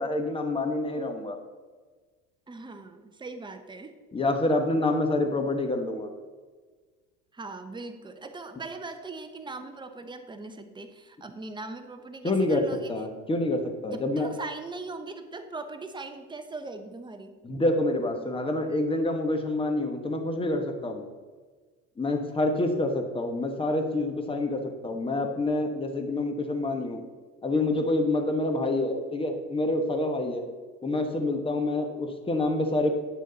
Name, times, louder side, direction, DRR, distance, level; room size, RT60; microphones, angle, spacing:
voice 1, 0.0-1.4 4.1-6.1 12.2-12.6 12.9-14.3 17.4-21.0 22.0-27.0 27.4-30.4 30.8-32.9, left 2 dB, 15° left, 5 dB, 1.2 m, -27 dB
voice 2, 2.5-3.9 7.3-12.9 13.9-17.4, right 3 dB, 15° right, 7 dB, 0.8 m, -40 dB
9.7 x 6.3 x 4.0 m, 1.4 s
supercardioid pair, 110°, 33 cm